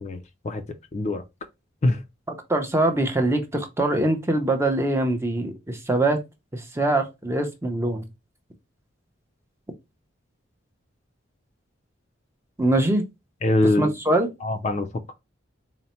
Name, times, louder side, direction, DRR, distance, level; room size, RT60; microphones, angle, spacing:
voice 1, 0.9-1.2 1.8-2.0 13.4-13.9 14.4-14.9, left 2 dB, 35° left, 0.4 m, -22 dB
voice 2, 2.3-6.2 6.5-8.0 12.6-13.0 13.8-14.3, right 1 dB, 15° right, 0.6 m, -23 dB
4.0 x 2.1 x 4.2 m
head